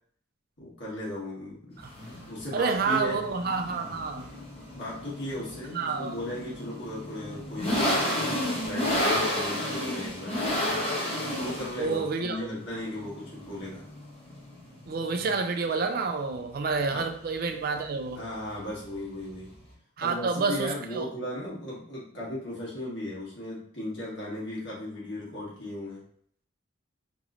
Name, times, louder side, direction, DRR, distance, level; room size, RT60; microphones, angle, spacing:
voice 1, 0.6-1.8 2.3-3.2 3.7-3.9 4.7-10.7 11.4-13.8 16.9-17.0 18.1-19.5 20.0-26.0, left 1 dB, 60° left, -6 dB, 1.3 m, -36 dB
sound 1, 1.8-19.7, left 1 dB, 30° left, 0.7 m, -32 dB
voice 2, 2.5-4.3 5.7-6.2 11.8-12.5 14.9-18.2 20.0-21.1, right 4 dB, 50° right, 6 dB, 0.3 m, -29 dB
3.0 x 3.0 x 2.4 m, 0.63 s
head